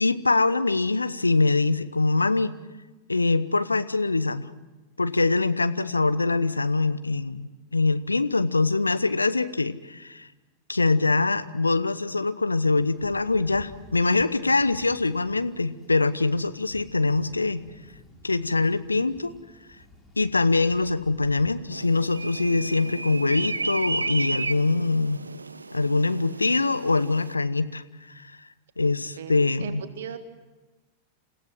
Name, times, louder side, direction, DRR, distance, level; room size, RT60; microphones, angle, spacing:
voice 1, 0.0-2.5 3.1-4.5 5.0-10.3 10.7-17.6 18.2-19.3 20.2-25.2 25.7-27.8 28.1-28.3 28.8-29.8, left 3 dB, 80° left, 13 dB, 0.8 m, -23 dB
Thunder, 12.8-22.7, left 1 dB, 15° left, 4.0 m, -52 dB
sound 1, 21.7-27.3, right 3 dB, 80° right, 0.7 m, -33 dB
voice 2, 29.6-30.2, right 8 dB, 60° right, 8 dB, 2.0 m, -36 dB
29.0 x 15.5 x 7.6 m, 1.2 s
figure-of-eight pair, 90°, 0 cm